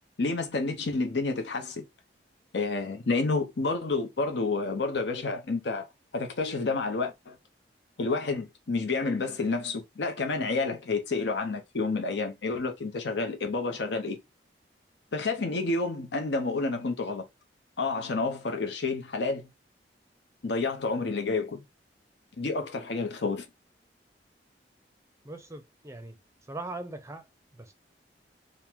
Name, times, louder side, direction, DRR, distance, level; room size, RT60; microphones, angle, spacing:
voice 1, 0.2-1.9 2.5-7.4 8.0-14.2 15.1-17.3 17.8-19.5 20.4-21.6 22.4-23.5, left 3 dB, 70° left, 0.7 m, -29 dB
voice 2, 25.2-26.2 26.5-27.2 27.6-27.7, right 2 dB, 15° right, 0.6 m, -40 dB
3.7 x 2.1 x 4.4 m
head